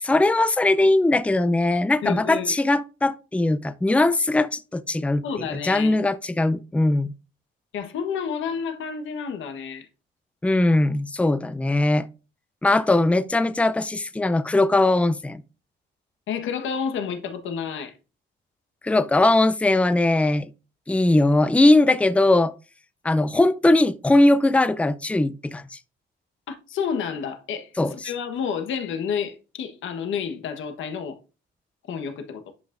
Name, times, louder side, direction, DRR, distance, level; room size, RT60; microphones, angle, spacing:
voice 1, 0.0-7.1 10.4-12.1 12.6-15.4 18.8-20.5 20.9-22.5 23.0-25.8 27.8-28.1, left 2 dB, 5° left, 0.5 m, -20 dB
voice 2, 2.0-2.5 5.2-6.0 7.7-9.9 16.3-17.9 26.5-31.2 31.9-32.5, left 7 dB, 75° left, 1.3 m, -30 dB
10.5 x 5.7 x 2.6 m
cardioid pair, 90°, 20 cm